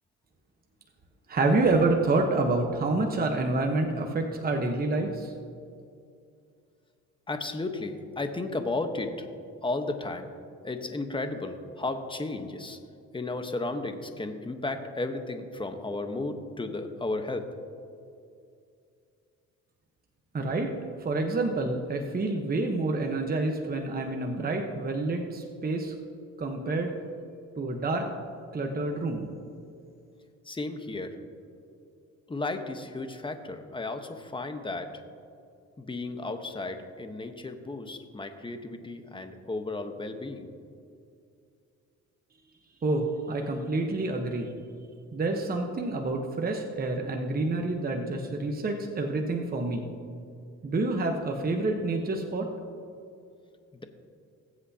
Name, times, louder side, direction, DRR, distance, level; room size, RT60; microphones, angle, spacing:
voice 1, 1.3-5.3 20.3-20.7 21.0-25.9 26.4-26.9 27.6-28.1 28.5-29.3 42.8-44.5 45.1-49.9 50.6-52.5, right 2 dB, 30° right, 2 dB, 1.1 m, -28 dB
voice 2, 7.3-9.3 9.6-10.3 10.6-12.8 13.1-17.5 30.4-31.2 32.3-34.9 35.8-40.5, left 2 dB, 15° left, 6 dB, 1.1 m, -34 dB
20.5 x 8.1 x 2.8 m, 2.5 s
cardioid pair, 90°, 30 cm